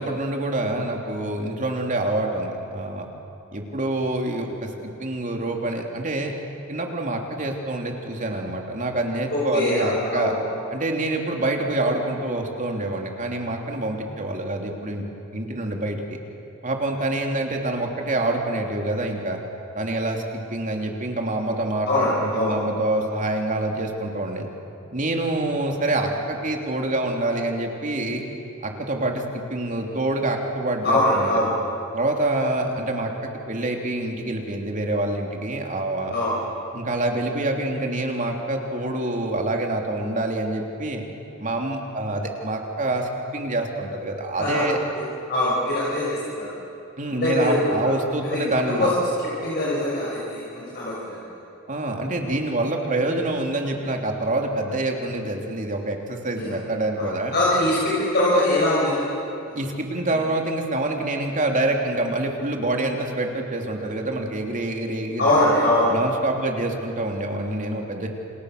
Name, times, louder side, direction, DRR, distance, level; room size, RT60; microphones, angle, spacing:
voice 1, 0.0-3.1 3.5-6.3 6.7-10.3 10.7-15.0 15.3-16.2 16.6-19.4 19.7-20.2 20.5-24.5 24.9-28.2 28.6-31.5 31.9-36.1 36.7-41.0 41.4-44.8 47.0-48.9 51.7-57.3 59.5-65.3 65.9-68.1, right 2 dB, 40° right, 2 dB, 3.2 m, -26 dB
voice 2, 9.3-10.3 21.9-22.6 22.9-23.0 30.8-31.5 36.1-36.3 44.4-44.7 44.9-46.5 47.1-47.6 48.2-48.4 48.8-48.9 49.4-51.2 56.3-56.4 57.0-59.1 59.4-59.6 60.1-60.2 65.2-65.9, left 1 dB, 50° left, -6 dB, 6.0 m, -22 dB
28.5 x 28.5 x 6.7 m, 2.8 s
head